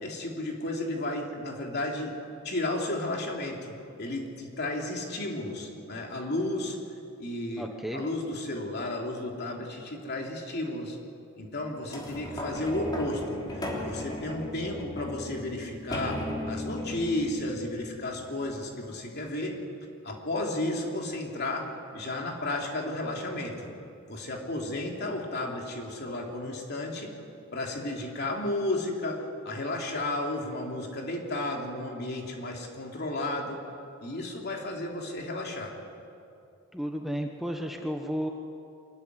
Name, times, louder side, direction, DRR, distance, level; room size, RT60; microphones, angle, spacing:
voice 1, 0.0-2.1 2.4-6.8 7.2-7.7 7.9-11.0 11.4-19.5 20.0-23.7 24.1-27.1 27.5-33.6 34.0-35.7, left 1 dB, 50° left, 0 dB, 3.2 m, -33 dB
voice 2, 7.6-8.0 36.7-38.3, equal, ahead, 3 dB, 1.0 m, -33 dB
sound 1, 11.9-18.7 19.3-19.4, left 1 dB, 20° left, 3.3 m, -36 dB
24.5 x 14.5 x 9.9 m, 2.6 s
head